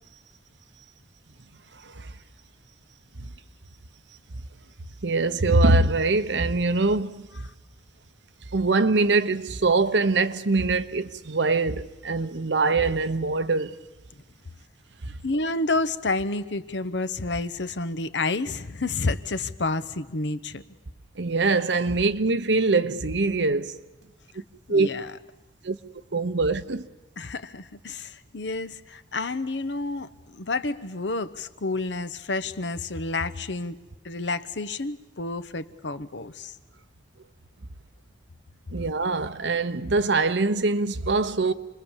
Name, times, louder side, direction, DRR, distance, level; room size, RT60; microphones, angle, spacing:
voice 1, 5.0-7.3 8.5-13.8 21.2-23.7 24.7-24.9 25.6-25.8 26.1-26.9 38.7-41.5, right 3 dB, 75° right, 1.0 m, -23 dB
voice 2, 15.2-20.6 24.7-25.2 27.2-36.5, left 3 dB, 75° left, 1.0 m, -30 dB
28.0 x 21.5 x 7.3 m
head